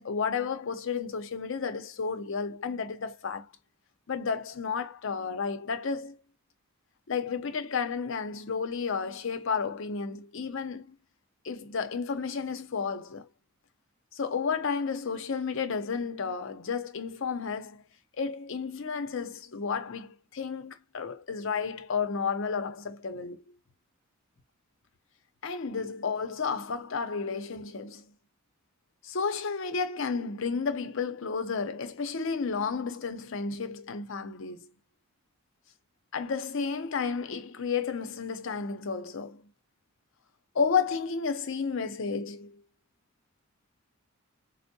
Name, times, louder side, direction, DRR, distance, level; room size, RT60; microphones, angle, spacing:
voice 1, 0.0-3.5 4.1-6.2 7.1-10.9 11.4-13.3 14.1-17.8 18.2-23.4 25.4-28.1 29.0-34.7 36.1-39.5 40.5-42.6, left 5 dB, 60° left, 0.6 m, -32 dB
4.3 x 2.0 x 2.7 m
head